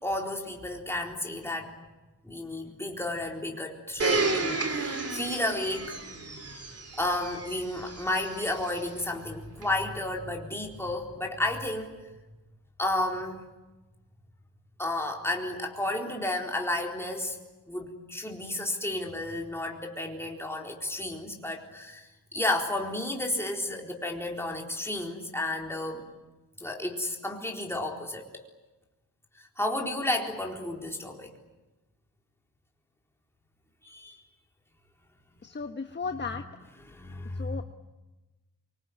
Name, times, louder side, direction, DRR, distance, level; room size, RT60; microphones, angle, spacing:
voice 1, 0.0-1.7 2.2-6.0 7.0-12.0 12.8-13.4 14.8-17.4 17.7-22.1 22.3-26.0 26.6-28.2 29.6-31.3 33.8-34.1 36.9-37.6, left 1 dB, 5° left, 1 dB, 4.1 m, -32 dB
Domestic sounds home sounds, 4.0-8.8 9.6-9.7, right 3 dB, 35° right, 3.1 m, -32 dB
voice 2, 35.4-36.4 37.3-37.6, left 4 dB, 25° left, 6 dB, 1.3 m, -35 dB
25.5 x 24.0 x 9.6 m, 1.1 s
wide cardioid pair, 145°, 39 cm